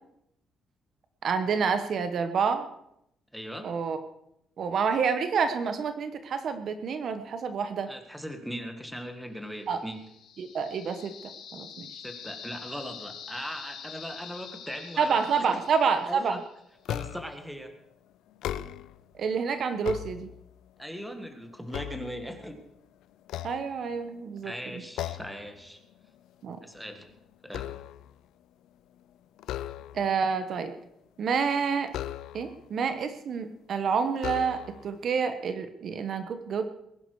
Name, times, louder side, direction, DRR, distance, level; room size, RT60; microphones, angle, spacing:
voice 1, 1.2-2.7 3.6-4.0 4.6-7.9 9.7-9.8 10.4-11.9 15.0-16.4 19.2-20.3 23.4-24.8 26.4-26.6 29.9-30.7 31.2-31.9 32.3-36.7, right 6 dB, 50° right, 9 dB, 1.1 m, -28 dB
voice 2, 3.3-3.7 7.9-10.0 12.0-15.2 16.0-16.4 16.9-17.7 20.8-22.6 24.4-25.8 26.6-27.1 27.4-27.7, equal, ahead, 6 dB, 1.7 m, -39 dB
sound 1, 9.7-16.6, left 7 dB, 70° left, 2.8 m, -45 dB
sound 2, 16.8-17.4 18.3-19.1 19.6-20.7 21.2-22.7 23.2-24.2 25.0-25.5 25.8-26.1 26.5-28.2 29.4-30.2 31.9-32.7 33.4-33.5 34.2-34.9, left 12 dB, 90° left, 0.5 m, -37 dB
20.5 x 11.0 x 4.8 m, 0.78 s
cardioid pair, 150°, 0 cm